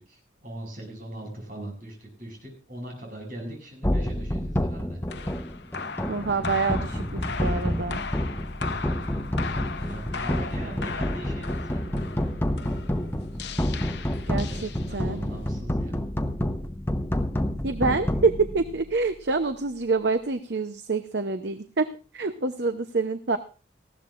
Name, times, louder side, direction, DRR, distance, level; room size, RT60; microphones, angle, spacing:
voice 1, 0.0-5.0 9.7-11.9 14.5-16.0, right 1 dB, 45° right, 1 dB, 7.0 m, -40 dB
sound 1, 3.8-19.1, left 1 dB, 10° left, 0.9 m, -29 dB
sound 2, 5.1-15.3, left 5 dB, 60° left, 0.7 m, -38 dB
voice 2, 6.1-8.0 14.3-15.2 17.6-21.9 22.1-23.4, right 4 dB, 65° right, 9 dB, 0.8 m, -26 dB
19.0 x 15.5 x 2.5 m, 0.35 s
head